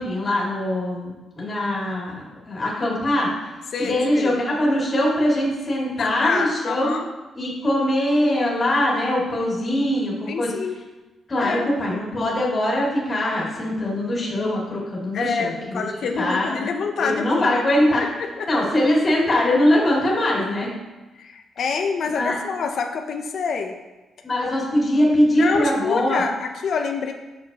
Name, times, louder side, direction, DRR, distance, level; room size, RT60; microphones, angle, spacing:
voice 1, 0.0-3.3 3.8-7.0 7.3-10.5 11.3-15.9 16.2-16.7 17.0-18.0 18.5-20.7 22.2-22.4 24.2-26.2, left 1 dB, 25° left, -4 dB, 2.1 m, -22 dB
voice 2, 3.7-4.4 6.0-7.1 10.3-10.8 11.4-11.7 15.1-17.6 18.2-18.5 21.2-23.8 25.3-27.1, left 5 dB, 55° left, 4 dB, 0.6 m, -26 dB
8.0 x 6.4 x 2.9 m, 1.1 s
wide cardioid pair, 160°, 0 cm